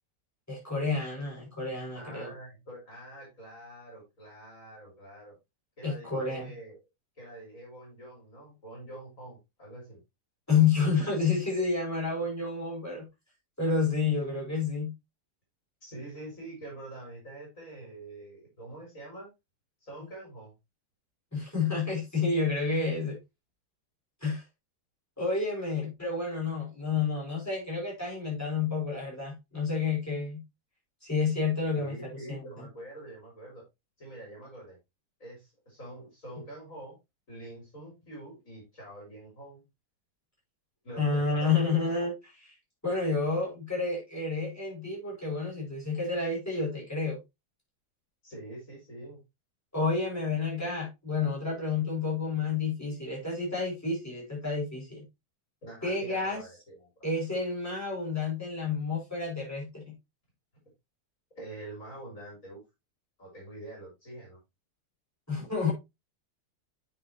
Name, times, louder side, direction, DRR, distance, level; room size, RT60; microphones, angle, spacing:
voice 1, 0.5-2.3 5.8-6.5 10.5-13.1 13.6-14.9 21.3-23.2 24.2-24.4 25.2-30.4 31.0-32.0 32.3-32.7 41.0-42.5 42.8-47.2 49.7-55.0 55.8-56.4 57.0-59.9 65.3-65.7, left 4 dB, 10° left, -4 dB, 6.0 m, -30 dB
voice 2, 1.9-5.4 5.8-6.8 7.1-10.0 15.8-19.3 19.8-20.5 31.8-33.6 34.0-34.8 35.2-37.0 37.3-39.6 40.8-41.7 48.2-49.2 55.6-56.9 61.4-62.6 63.2-64.4, right 1 dB, 55° left, -2 dB, 5.0 m, -45 dB
9.4 x 6.7 x 3.0 m, 0.22 s
omnidirectional pair, 1.7 m